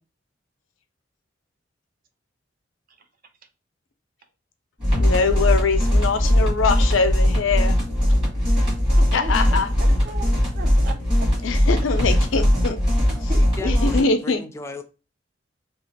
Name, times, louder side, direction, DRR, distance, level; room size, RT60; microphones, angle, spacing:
sound 1, 4.8-14.0, equal, 25° right, 1.4 m, -20 dB
voice 1, 5.0-7.7 9.1-9.7 11.4-12.8 13.6-14.4, left 4 dB, 85° left, 0.5 m, -23 dB
voice 2, 9.0-11.3 11.8-11.9 13.3-13.8, right 3 dB, 50° right, 0.5 m, -38 dB
sound 2, 9.1-9.5 10.0-11.0 11.7-12.4 13.1-13.4, right 1 dB, 65° right, 0.9 m, -47 dB
voice 3, 13.3-14.8, left 2 dB, 15° left, 0.4 m, -36 dB
2.9 x 2.4 x 2.7 m
head